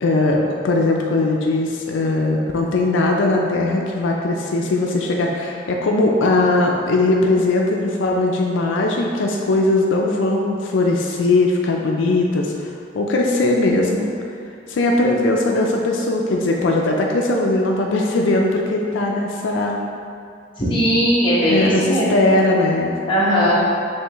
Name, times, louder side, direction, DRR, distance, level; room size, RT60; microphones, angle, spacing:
voice 1, 0.0-14.1 14.7-19.8 21.5-23.0, left 2 dB, 85° left, 0 dB, 0.4 m, -19 dB
voice 2, 20.6-22.1 23.1-23.5, equal, 25° left, -8 dB, 1.1 m, -18 dB
5.5 x 3.2 x 3.0 m, 2.4 s
head